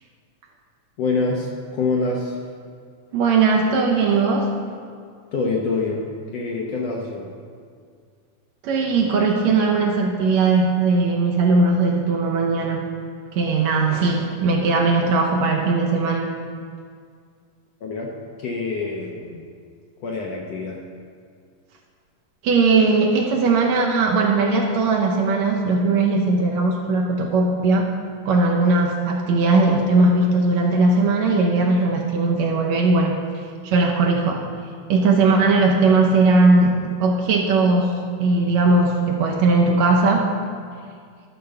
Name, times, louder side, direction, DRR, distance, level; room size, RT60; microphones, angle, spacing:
voice 1, 1.0-2.3 5.3-6.1 6.3-7.3 17.8-18.1 18.4-19.4 20.0-20.8, left 3 dB, 70° left, -1 dB, 1.6 m, -25 dB
voice 2, 3.1-4.5 8.6-12.8 13.3-16.3 22.4-27.9 28.3-33.2 33.6-34.4 34.9-37.9 38.2-40.3, right 3 dB, 70° right, 0 dB, 1.9 m, -19 dB
12.5 x 4.6 x 6.6 m, 2.1 s
omnidirectional pair, 3.7 m